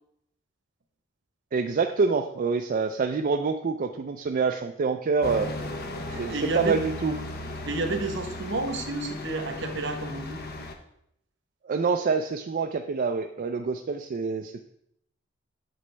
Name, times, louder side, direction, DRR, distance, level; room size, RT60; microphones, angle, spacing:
voice 1, 1.5-5.5 6.2-7.1 11.6-14.6, right 4 dB, 45° right, 5 dB, 0.4 m, -26 dB
sound 1, 5.2-10.8, left 2 dB, 50° left, 0.8 m, -36 dB
voice 2, 6.1-6.8 7.6-10.4, right 2 dB, 65° right, 6 dB, 1.0 m, -30 dB
8.3 x 6.2 x 3.3 m, 0.74 s
head